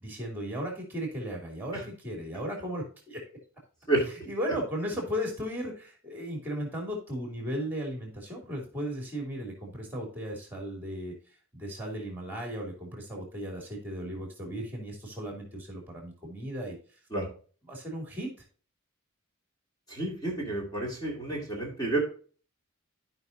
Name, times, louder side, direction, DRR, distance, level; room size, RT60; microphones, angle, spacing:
voice 1, 0.0-3.2 4.3-11.2 11.5-16.8 17.7-18.3, equal, 10° right, 1 dB, 2.8 m, -36 dB
voice 2, 19.9-22.0, right 2 dB, 20° left, -2 dB, 2.4 m, -30 dB
14.0 x 5.5 x 2.7 m, 0.40 s
head